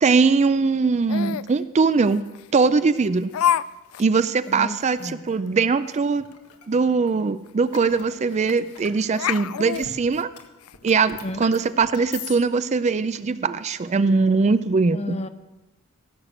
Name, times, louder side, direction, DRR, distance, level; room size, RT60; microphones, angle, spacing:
voice 1, 0.0-2.2 2.5-3.3 4.0-6.2 6.7-10.3 10.8-15.2, right 4 dB, 30° right, 13 dB, 0.4 m, -21 dB
Laughter, 1.1-1.5 2.3-2.4 3.3-3.6 3.9-4.0 4.5-4.6 5.0-5.1 7.1-7.2 7.5-7.6 8.5-8.8 9.1-10.7, left 10 dB, 65° left, 0.3 m, -26 dB
voice 2, 4.5-5.2 11.2-11.4 14.9-15.3, left 2 dB, 30° left, 11 dB, 0.6 m, -32 dB
sound 1, 5.3-5.4 6.3-6.7 7.7-9.0 9.5-10.4 10.6-12.4, left 7 dB, 85° left, 1.6 m, -40 dB
16.5 x 6.7 x 7.3 m, 1.1 s
head